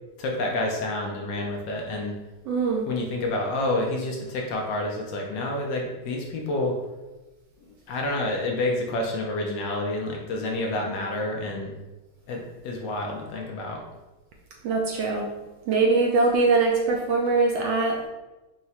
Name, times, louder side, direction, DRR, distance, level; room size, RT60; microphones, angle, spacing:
voice 1, 0.2-2.2 2.9-6.8 7.9-11.7 12.3-13.8, left 2 dB, 70° left, 0 dB, 1.2 m, -28 dB
voice 2, 2.5-2.9 14.6-15.3 15.7-18.1, right 3 dB, 75° right, 0 dB, 1.1 m, -22 dB
4.7 x 2.1 x 4.1 m, 1.1 s
omnidirectional pair, 2.3 m